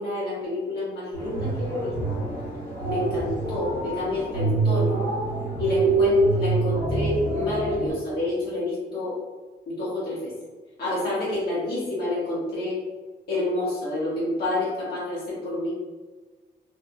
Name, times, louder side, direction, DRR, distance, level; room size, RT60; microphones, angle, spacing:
voice 1, 0.0-2.3 2.8-5.0 5.6-9.2 9.7-10.3 10.8-12.8 13.3-15.7, left 2 dB, 60° left, -8 dB, 1.4 m, -28 dB
sound 1, 1.1-7.9, right 2 dB, 25° left, 1.5 m, -26 dB
3.5 x 2.8 x 2.3 m, 1.3 s
cardioid pair, 160°, 18 cm